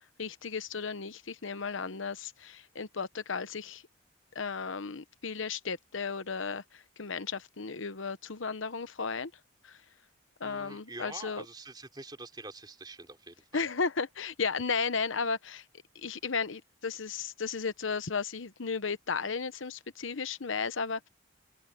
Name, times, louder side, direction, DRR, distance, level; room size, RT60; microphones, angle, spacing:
voice 1, 0.2-3.8 4.3-9.3 9.6-9.8 10.4-11.4 13.5-15.6 15.9-21.1, left 5 dB, 75° left, 1.0 m, -34 dB
voice 2, 10.4-13.7, right 2 dB, 20° right, 3.9 m, -46 dB
open air
head